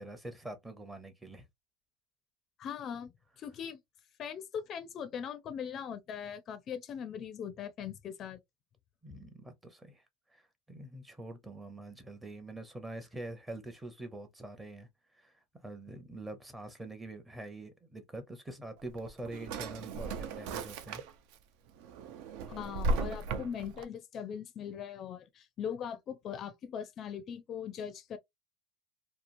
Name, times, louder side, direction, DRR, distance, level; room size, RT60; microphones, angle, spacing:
voice 1, 0.0-1.5 9.0-10.0 10.3-10.4 10.7-14.9 15.1-21.0, right 2 dB, 10° right, 0.6 m, -45 dB
voice 2, 2.6-3.8 4.2-8.4 22.5-28.2, left 8 dB, 35° left, 0.4 m, -40 dB
Drawer open or close, 18.8-21.4 21.8-23.8, right 2 dB, 70° right, 0.4 m, -36 dB
2.8 x 2.3 x 2.5 m
supercardioid pair, 140°, 0 cm